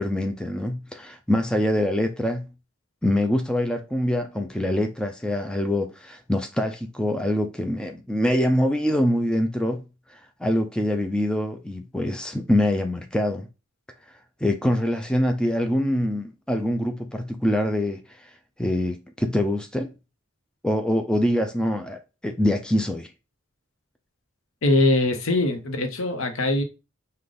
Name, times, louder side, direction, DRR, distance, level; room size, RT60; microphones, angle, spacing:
voice 1, 0.0-2.5 3.0-9.8 10.1-13.5 14.4-18.3 18.6-19.9 20.6-23.1, left 1 dB, 5° left, 0.3 m, -24 dB
voice 2, 24.6-26.6, left 2 dB, 75° left, 0.8 m, -22 dB
5.0 x 2.2 x 3.9 m
head